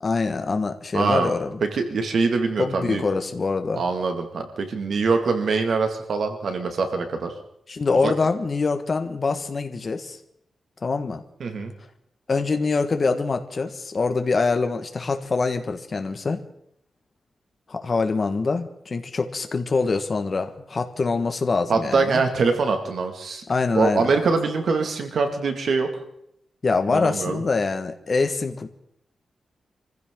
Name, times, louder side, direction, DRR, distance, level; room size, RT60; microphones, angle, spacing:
voice 1, 0.0-1.6 2.6-3.8 7.7-10.2 10.8-11.2 12.3-16.4 17.7-22.2 23.5-24.1 26.6-28.7, left 4 dB, 40° left, 7 dB, 1.5 m, -24 dB
voice 2, 0.9-1.3 1.6-3.1 3.7-7.3 8.0-8.1 11.4-11.7 21.7-23.4 23.7-25.9 26.9-27.4, right 4 dB, 65° right, 5 dB, 2.1 m, -23 dB
25.0 x 15.0 x 3.8 m, 0.74 s
wide cardioid pair, 145°, 0 cm